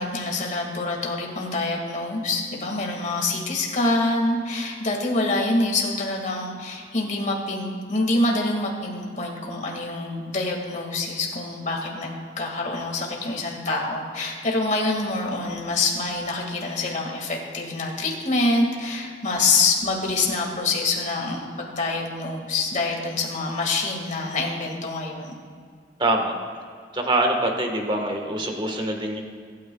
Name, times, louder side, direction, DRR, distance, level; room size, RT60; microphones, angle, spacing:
voice 1, 0.0-25.3, left 2 dB, 45° left, 0 dB, 2.0 m, -26 dB
voice 2, 26.0-26.3 26.9-29.2, right 1 dB, 25° right, 3 dB, 1.4 m, -24 dB
24.0 x 9.3 x 2.3 m, 2.1 s
head